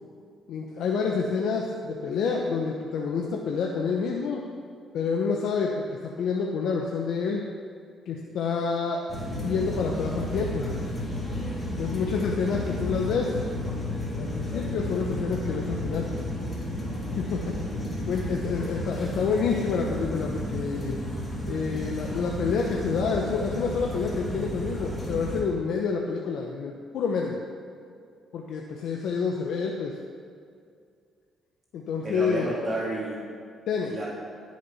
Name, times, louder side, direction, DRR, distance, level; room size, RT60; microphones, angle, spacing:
voice 1, 0.5-4.4 4.9-7.4 8.1-9.0 9.4-10.7 11.8-13.3 14.1-16.1 17.2-17.5 18.1-21.0 21.5-27.4 28.3-30.0 31.7-32.5 33.7-33.9, left 5 dB, 75° left, 0 dB, 1.0 m, -28 dB
sound 1, 9.1-25.4, left 1 dB, 20° left, 3.1 m, -32 dB
voice 2, 18.3-19.0 32.0-33.2 33.8-34.1, right 1 dB, 35° right, -6 dB, 3.2 m, -32 dB
15.5 x 6.4 x 5.6 m, 2.3 s
cardioid pair, 90°, 0 cm